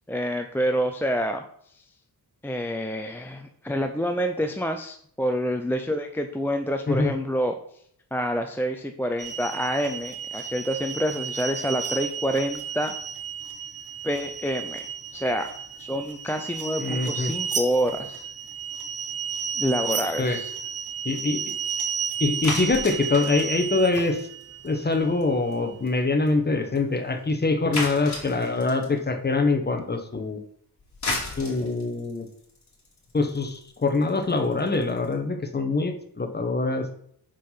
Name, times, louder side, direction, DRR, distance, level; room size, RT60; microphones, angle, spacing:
voice 1, 0.1-1.4 2.4-7.5 8.1-12.9 14.0-14.9 15.1-15.5 15.8-18.3 19.6-20.5, equal, 5° left, 5 dB, 0.4 m, -27 dB
sound 1, 9.2-26.0, right 7 dB, 40° right, 0.7 m, -33 dB
voice 2, 16.8-17.3 20.2-20.4 21.0-21.4 22.2-24.3 24.6-30.4 31.4-32.3 33.1-36.9, left 3 dB, 25° left, 5 dB, 1.0 m, -24 dB
sound 2, 22.4-24.7 24.9-25.2 25.5-25.6 25.9-26.0 26.3-26.4 26.7-26.8 27.7-29.0 30.8-35.1, left 2 dB, 45° left, 2.3 m, -33 dB
5.7 x 5.2 x 5.7 m, 0.66 s
wide cardioid pair, 150°, 39 cm